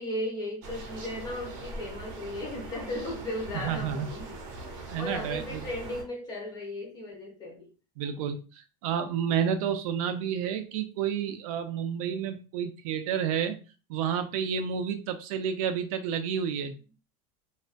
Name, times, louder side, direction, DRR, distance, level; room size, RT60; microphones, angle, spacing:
voice 1, 0.0-7.7, left 1 dB, 20° left, 0.7 m, -36 dB
sound 1, 0.6-6.0, right 2 dB, 45° right, 0.7 m, -41 dB
voice 2, 3.6-4.1 4.9-5.6 8.0-13.6 13.9-16.7, right 8 dB, 65° right, 0.4 m, -30 dB
2.4 x 2.2 x 2.5 m
supercardioid pair, 160°, 19 cm